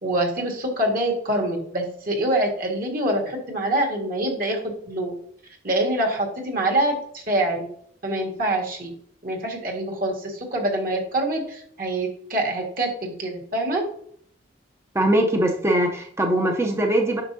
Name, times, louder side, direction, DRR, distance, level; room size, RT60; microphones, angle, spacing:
voice 1, 0.0-5.1 5.6-7.7 8.0-8.9 9.2-13.9, right 1 dB, 45° right, 1 dB, 1.8 m, -25 dB
voice 2, 14.9-17.2, right 1 dB, 15° right, 2 dB, 0.7 m, -21 dB
9.5 x 6.3 x 2.7 m, 0.65 s
head